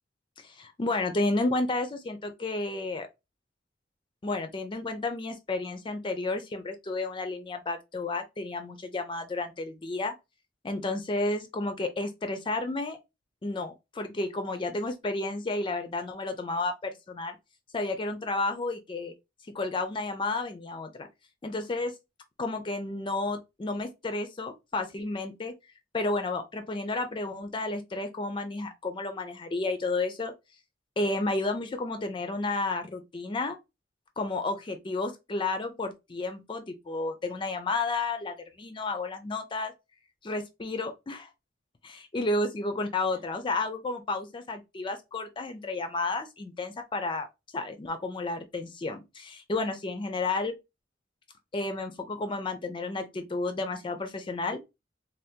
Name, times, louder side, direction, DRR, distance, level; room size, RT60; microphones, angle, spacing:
voice 1, 0.4-3.1 4.2-10.1 10.6-13.0 13.4-17.4 17.7-19.1 19.5-21.1 21.4-21.9 22.4-25.5 25.9-30.3 31.0-33.6 34.2-39.7 40.2-41.3 41.8-47.3 47.5-50.6 51.5-54.6, left 2 dB, 30° left, 0.4 m, -31 dB
2.7 x 2.2 x 3.5 m
head